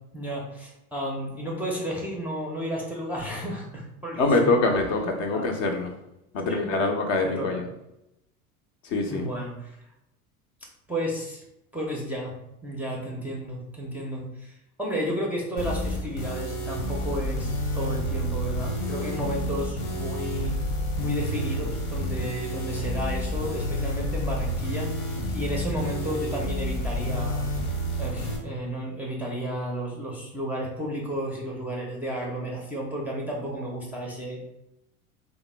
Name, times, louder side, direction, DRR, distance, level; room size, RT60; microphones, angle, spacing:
voice 1, 0.1-4.5 5.3-5.7 6.5-6.7 7.2-7.6 9.1-9.8 10.9-11.4 11.7-12.3 12.6-20.6 21.0-27.5 28.0-34.5, equal, 5° right, -3 dB, 0.5 m, -32 dB
voice 2, 4.1-5.9 6.3-7.7 8.8-9.3, left 3 dB, 45° left, 4 dB, 0.6 m, -24 dB
sound 1, 15.6-28.4, equal, 80° left, 1.1 m, -29 dB
3.4 x 2.1 x 3.2 m, 0.88 s
figure-of-eight pair, 75°, 45 cm